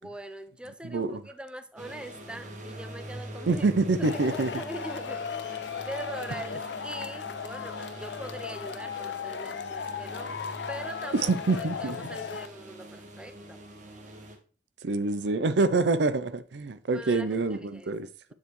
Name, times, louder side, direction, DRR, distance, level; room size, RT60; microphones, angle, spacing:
voice 1, 0.0-3.6 4.0-10.3 10.7-13.6 16.9-17.9, right 1 dB, 5° right, 0.5 m, -42 dB
voice 2, 0.8-1.2 3.5-4.5 11.1-12.0 14.8-18.1, right 3 dB, 80° right, 0.5 m, -26 dB
sound 1, 1.8-14.4, right 1 dB, 45° right, 1.4 m, -44 dB
Male speech man speaking / Shout / Clapping, 4.0-12.5, left 6 dB, 75° left, 0.5 m, -36 dB
7.3 x 6.9 x 3.1 m
head